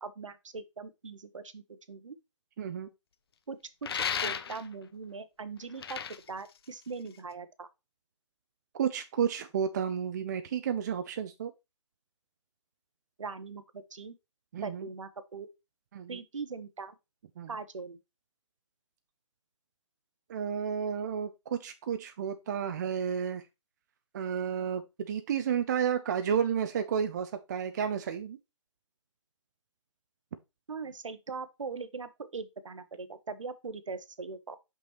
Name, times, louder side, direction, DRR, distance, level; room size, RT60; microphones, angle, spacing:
voice 1, 0.0-2.2 3.5-6.0 6.3-7.7 13.2-14.1 14.6-15.5 16.1-16.9 17.5-18.0 30.7-34.6, right 4 dB, 70° right, 1.0 m, -41 dB
voice 2, 2.6-2.9 8.7-11.5 14.5-14.9 15.9-16.2 17.4-17.5 20.3-23.4 24.1-28.4, right 8 dB, 35° right, 0.5 m, -31 dB
sound 1, 3.8-4.8 5.6-7.3, left 7 dB, 50° left, 0.6 m, -35 dB
6.1 x 5.6 x 3.0 m
figure-of-eight pair, 145°, 17 cm